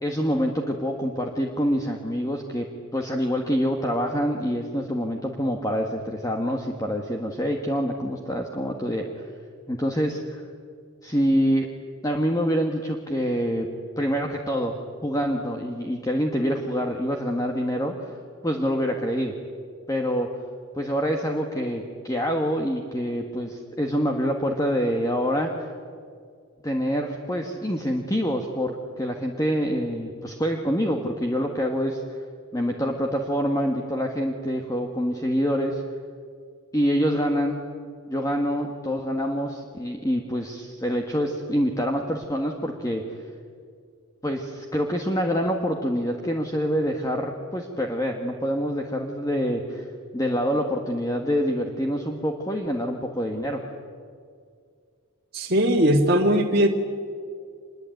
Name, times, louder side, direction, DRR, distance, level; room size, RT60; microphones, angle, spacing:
voice 1, 0.0-2.7 2.9-9.3 9.7-10.4 11.0-11.7 12.0-13.7 14.0-14.7 15.0-18.2 18.4-19.3 19.9-20.3 20.7-25.7 26.6-32.0 32.5-35.8 36.7-37.6 38.1-43.0 44.2-49.9 50.1-53.6, equal, 15° left, 2 dB, 1.6 m, -26 dB
voice 2, 55.3-56.7, equal, 45° right, -2 dB, 2.0 m, -19 dB
26.5 x 22.0 x 9.3 m, 2.2 s
head